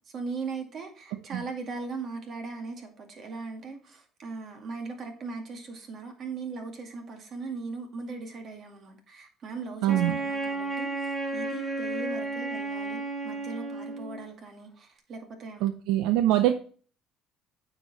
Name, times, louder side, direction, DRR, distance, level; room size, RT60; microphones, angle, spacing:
voice 1, 0.1-15.6, right 4 dB, 55° right, 2.2 m, -39 dB
voice 2, 1.1-1.4 9.8-10.2 15.6-16.6, right 13 dB, 80° right, 0.5 m, -24 dB
Wind instrument woodwind instrument, 9.9-14.2, right 3 dB, 30° right, 3.4 m, -32 dB
9.0 x 5.1 x 4.0 m
supercardioid pair, 80°, 0 cm